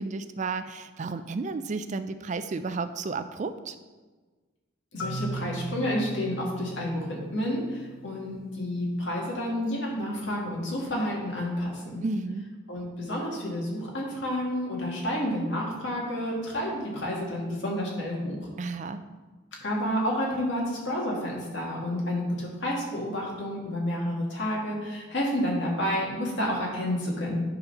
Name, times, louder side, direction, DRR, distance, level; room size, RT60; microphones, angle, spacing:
voice 1, 0.0-3.8 12.0-12.4 18.6-19.0, right 4 dB, 35° right, 10 dB, 0.3 m, -32 dB
voice 2, 4.9-12.0 12.7-18.4 19.6-27.4, left 1 dB, 60° left, -2 dB, 2.1 m, -30 dB
Marimba xylophone, 5.0-8.9, right 3 dB, 80° left, 0.8 m, -39 dB
9.6 x 4.0 x 5.7 m, 1.3 s
head